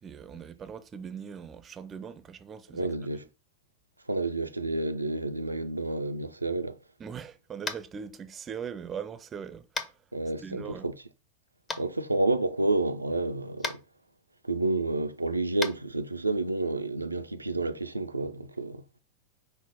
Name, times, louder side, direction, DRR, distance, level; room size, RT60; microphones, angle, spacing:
voice 1, 0.0-2.9 7.0-9.9 10.4-10.9, right 7 dB, 25° right, 0.5 m, -40 dB
voice 2, 2.7-3.2 4.1-6.8 10.1-10.9 11.8-13.8 14.4-18.8, right 2 dB, 85° right, 0.4 m, -30 dB
Tap, 7.6-7.9 9.7-9.9 11.7-11.8 13.6-13.8 15.6-15.7, left 4 dB, 20° left, 0.7 m, -33 dB
5.5 x 2.0 x 4.7 m
figure-of-eight pair, 90°, 0 cm